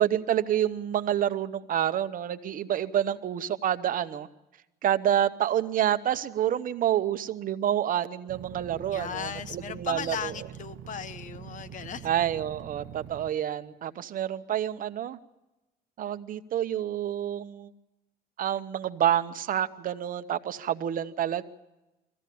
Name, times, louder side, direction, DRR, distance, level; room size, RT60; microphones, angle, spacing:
voice 1, 0.0-4.3 4.8-10.3 12.0-15.2 16.0-17.7 18.4-21.4, right 10 dB, 55° right, 12 dB, 0.9 m, -28 dB
sound 1, 8.3-13.3, right 10 dB, 80° right, 0.8 m, -44 dB
voice 2, 8.9-12.1 12.6-12.7, left 8 dB, 50° left, 12 dB, 1.1 m, -37 dB
22.0 x 15.0 x 8.5 m, 1.0 s
cardioid pair, 110°, 17 cm